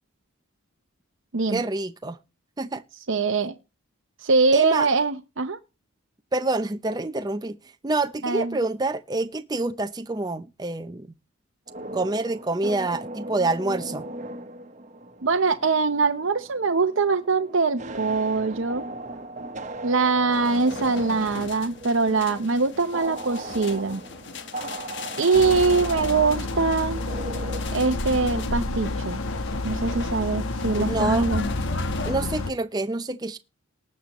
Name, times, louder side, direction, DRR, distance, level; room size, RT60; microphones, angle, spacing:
voice 1, 1.5-2.2 2.6-2.8 4.5-4.9 6.3-7.6 7.8-11.1 11.9-14.1 30.8-31.3 32.1-33.4, right 2 dB, 20° right, 0.6 m, -27 dB
voice 2, 3.1-3.6 4.2-5.6 8.2-8.6 15.2-18.8 19.8-24.0 25.2-27.0 27.7-29.2 29.6-31.4, right 4 dB, 60° right, 0.8 m, -23 dB
sound 1, 11.7-28.6, right 1 dB, 35° right, 1.2 m, -38 dB
sound 2, 20.3-32.1, left 4 dB, 55° left, 1.2 m, -39 dB
sound 3, 25.3-32.5, left 2 dB, 80° left, 1.2 m, -29 dB
19.5 x 6.7 x 3.0 m
head